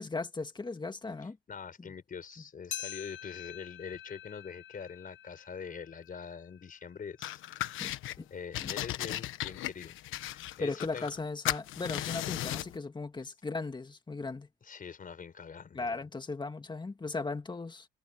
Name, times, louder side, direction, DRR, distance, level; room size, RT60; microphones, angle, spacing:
voice 1, 0.0-1.4 1.8-1.9 7.8-8.3 8.6-8.7 10.6-14.5 15.7-17.9, left 3 dB, 20° left, 2.0 m, -37 dB
voice 2, 1.5-7.8 8.3-10.0 10.3-11.1 14.6-15.9, left 6 dB, 45° left, 5.0 m, -44 dB
sound 1, 2.7-7.4 7.9-8.0 8.8-8.9 9.8-9.9, left 12 dB, 75° left, 8.0 m, -46 dB
sound 2, 7.2-8.2 8.5-11.2 11.4-12.8, left 14 dB, 90° left, 1.3 m, -36 dB
cardioid pair, 90°, 20 cm